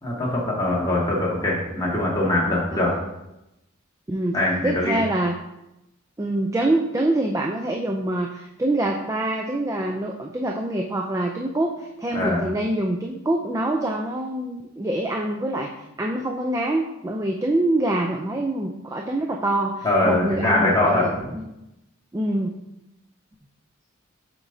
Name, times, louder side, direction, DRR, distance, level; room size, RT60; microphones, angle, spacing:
voice 1, 0.0-2.9 4.3-5.0 12.1-12.4 19.8-21.1, left 1 dB, 20° left, -5 dB, 1.5 m, -22 dB
voice 2, 4.1-5.3 6.2-15.7 16.0-21.4 22.1-22.5, right 1 dB, 15° right, 1 dB, 0.3 m, -25 dB
7.1 x 5.1 x 2.7 m, 0.90 s
head